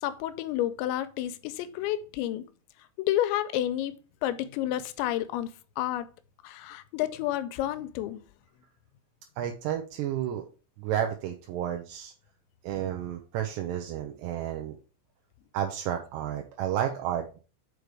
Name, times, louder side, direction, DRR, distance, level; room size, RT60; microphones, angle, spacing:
voice 1, 0.0-2.5 3.0-4.0 4.2-6.1 6.4-8.2, left 13 dB, 90° left, 2.9 m, -30 dB
voice 2, 9.4-10.4 10.8-12.1 12.6-14.8 15.5-17.4, right 10 dB, 80° right, 2.8 m, -31 dB
6.7 x 5.0 x 4.7 m
omnidirectional pair, 5.1 m